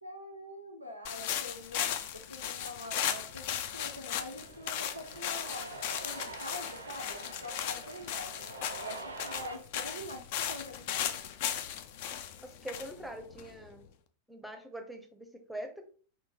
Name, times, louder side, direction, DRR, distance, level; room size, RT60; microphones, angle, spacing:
voice 1, 0.0-5.7 6.0-8.4 8.8-11.2, left 1 dB, 90° left, 3 dB, 0.7 m, -45 dB
sound 1, 1.0-13.8, left 10 dB, 50° left, 0.4 m, -37 dB
Cheering, 3.5-9.6, right 2 dB, 80° right, 0.5 m, -46 dB
voice 2, 12.4-13.9 14.3-15.9, right 1 dB, ahead, 5 dB, 0.6 m, -43 dB
3.6 x 2.7 x 3.0 m, 0.41 s
figure-of-eight pair, 90°, 0 cm